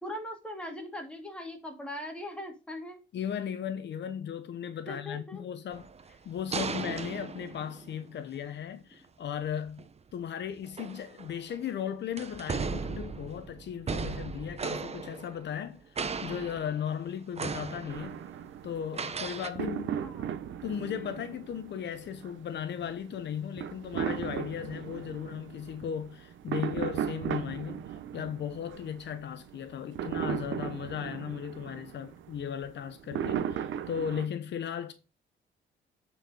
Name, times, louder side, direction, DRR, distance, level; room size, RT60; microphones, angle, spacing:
voice 1, 0.0-3.0 4.9-5.5 20.0-20.4, left 1 dB, 5° left, 2.7 m, -40 dB
voice 2, 3.1-5.9 6.2-9.8 10.1-18.2 18.6-20.0 20.6-34.9, left 8 dB, 60° left, 0.9 m, -36 dB
sound 1, 5.7-8.2 9.7-9.9 10.6-11.6 12.2-15.7 16.0-17.0 17.4-18.3 18.9-19.5, right 5 dB, 30° right, 0.9 m, -37 dB
sound 2, 17.9-34.3, right 9 dB, 75° right, 0.9 m, -37 dB
8.7 x 4.9 x 5.1 m
cardioid pair, 90°, 20 cm